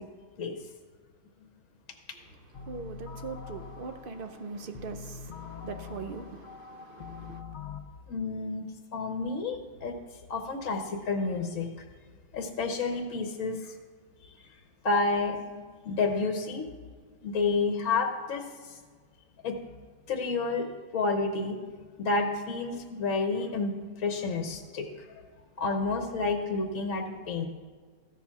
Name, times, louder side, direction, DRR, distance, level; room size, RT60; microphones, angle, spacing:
voice 1, 2.1-7.4, right 4 dB, 60° right, 0.6 m, -41 dB
sound 1, 2.5-7.8, left 6 dB, 75° left, 0.4 m, -43 dB
voice 2, 8.1-8.7 8.9-9.9 10.3-11.7 12.3-13.7 14.4-14.5 14.8-16.6 17.2-18.8 19.4-19.6 20.1-20.7 20.9-21.6 22.0-25.1 25.6-27.5, left 3 dB, 60° left, 1.2 m, -30 dB
14.0 x 7.1 x 5.8 m
omnidirectional pair, 1.7 m